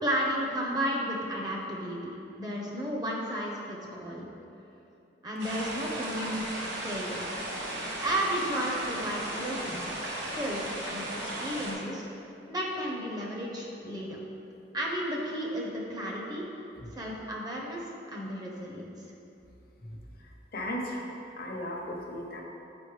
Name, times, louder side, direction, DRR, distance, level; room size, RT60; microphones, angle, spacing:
voice 1, 0.0-4.3 5.2-7.2 8.0-10.0 10.3-12.1 12.5-14.2 14.7-16.4 16.9-18.9, equal, 20° right, -3 dB, 0.8 m, -33 dB
sound 1, 5.4-11.7, right 1 dB, 75° right, 1.2 m, -36 dB
voice 2, 20.5-21.0 21.4-22.4, left 1 dB, 55° left, -1 dB, 0.8 m, -36 dB
7.0 x 5.2 x 3.2 m, 2.8 s
head